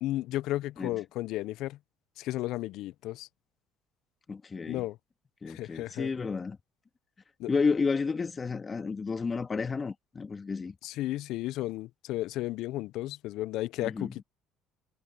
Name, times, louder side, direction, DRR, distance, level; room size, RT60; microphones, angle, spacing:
voice 1, 0.0-1.8 2.2-3.3 4.7-5.0 5.5-6.1 7.4-7.5 10.8-14.2, left 16 dB, 70° left, 0.6 m, -33 dB
voice 2, 4.3-4.8 5.4-6.6 7.5-10.7 13.8-14.2, left 4 dB, 30° left, 2.4 m, -31 dB
supercardioid pair, 75°, 0 cm